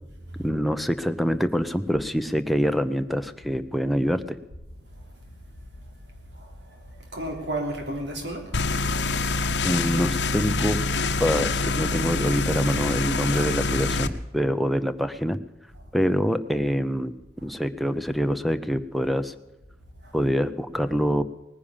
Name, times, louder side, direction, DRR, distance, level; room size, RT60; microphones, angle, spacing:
voice 1, 0.4-4.4 9.6-10.8 11.2-15.4 15.9-17.1 17.4-19.3 20.1-21.2, equal, ahead, 8 dB, 0.7 m, -25 dB
voice 2, 6.3-6.8 7.1-8.6 15.7-15.8 20.0-20.1, right 1 dB, 75° right, 2 dB, 3.4 m, -33 dB
sound 1, 8.5-14.1, left 3 dB, 80° left, 0.9 m, -25 dB
19.0 x 10.0 x 7.2 m, 1.0 s
head